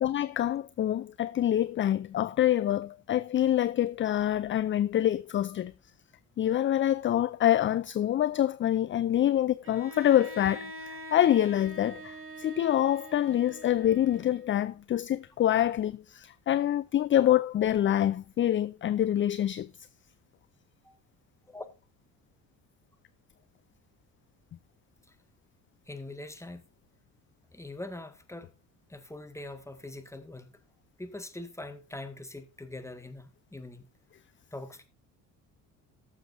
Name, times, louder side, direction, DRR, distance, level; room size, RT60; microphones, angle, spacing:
voice 1, 0.0-5.7 6.4-19.7, left 11 dB, 25° left, 0.4 m, -26 dB
Bowed string instrument, 9.6-14.7, right 1 dB, 30° right, 1.7 m, -45 dB
voice 2, 25.9-26.6 27.5-28.5 28.9-30.6 31.0-33.9 34.5-34.8, left 2 dB, 5° left, 1.9 m, -43 dB
18.5 x 7.1 x 2.7 m
hypercardioid pair, 55°, 46 cm